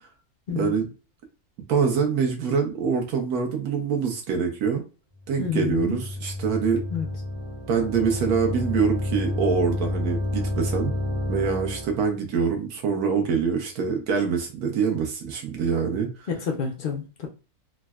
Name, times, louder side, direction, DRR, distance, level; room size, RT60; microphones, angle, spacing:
voice 1, 0.5-0.9 1.7-4.8 5.3-6.8 7.7-10.9 11.3-16.3, right 6 dB, 80° right, 3 dB, 1.2 m, -25 dB
sound 1, 5.2-12.1, left 1 dB, 10° right, 0.5 m, -30 dB
voice 2, 5.4-6.0 6.9-7.1 16.3-17.3, left 6 dB, 75° left, 1 dB, 0.4 m, -28 dB
3.7 x 2.1 x 2.3 m, 0.32 s
omnidirectional pair, 1.6 m